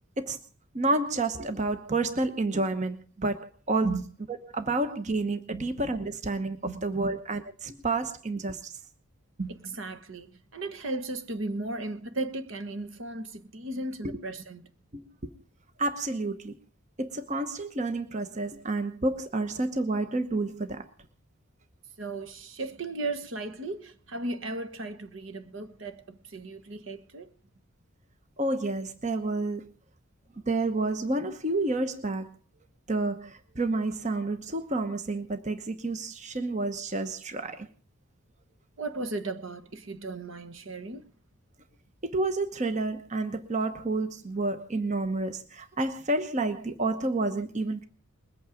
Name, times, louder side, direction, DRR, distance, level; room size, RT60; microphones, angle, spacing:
voice 1, 0.7-3.9 4.5-8.7 14.0-14.2 14.9-15.3 15.8-16.5 17.0-20.8 28.4-29.7 30.5-32.3 32.9-37.7 42.0-47.8, right 2 dB, 35° right, 1.0 m, -30 dB
voice 2, 6.6-7.1 9.4-14.7 22.0-27.3 38.8-41.0, right 2 dB, 60° right, 1.2 m, -36 dB
21.0 x 8.7 x 5.0 m
head